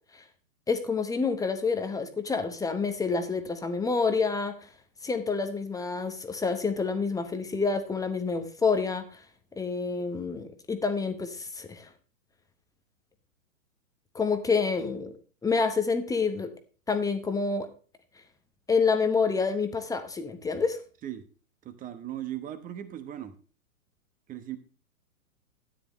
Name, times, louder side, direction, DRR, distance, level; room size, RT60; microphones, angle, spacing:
voice 1, 0.7-4.5 5.0-9.0 9.6-11.9 14.1-15.1 15.4-16.5 16.9-17.7 18.7-20.8, left 4 dB, 10° left, 1.0 m, -28 dB
voice 2, 21.6-23.3 24.3-24.6, right 12 dB, 20° right, 1.1 m, -37 dB
13.0 x 9.8 x 3.1 m
hypercardioid pair, 120°, 44 cm